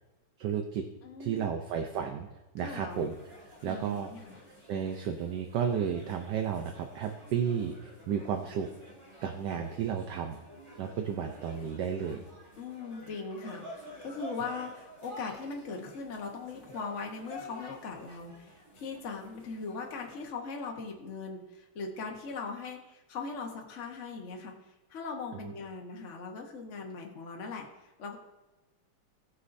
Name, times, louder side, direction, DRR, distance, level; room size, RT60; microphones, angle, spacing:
voice 1, 0.4-0.8 1.2-2.3 2.5-3.1 3.6-4.1 4.7-7.7 8.1-8.7 9.2-10.4 10.8-12.2 25.4-25.5, right 7 dB, 65° right, 5 dB, 1.2 m, -32 dB
voice 2, 1.0-1.5 2.6-3.1 3.6-4.4 12.6-28.2, left 4 dB, 40° left, 1 dB, 1.2 m, -40 dB
sound 1, 2.9-20.2, equal, 15° right, 1.8 m, -51 dB
18.5 x 6.4 x 2.6 m, 1.1 s
omnidirectional pair, 2.4 m